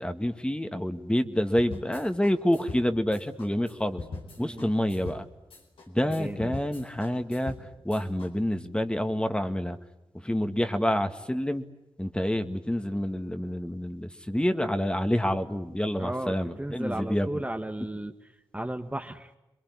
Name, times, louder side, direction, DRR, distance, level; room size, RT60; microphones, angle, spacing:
voice 1, 0.0-4.0 4.4-5.3 5.9-7.6 7.8-9.8 10.1-11.6 12.0-17.4, equal, 10° left, 7 dB, 2.1 m, -28 dB
sound 1, 1.6-8.3, left 3 dB, 90° left, 4.6 m, -42 dB
voice 2, 4.4-4.7 6.0-6.6 16.0-18.1 18.5-19.3, right 1 dB, 15° right, 5 dB, 1.6 m, -35 dB
27.0 x 22.0 x 9.9 m, 0.96 s
cardioid pair, 40°, 9 cm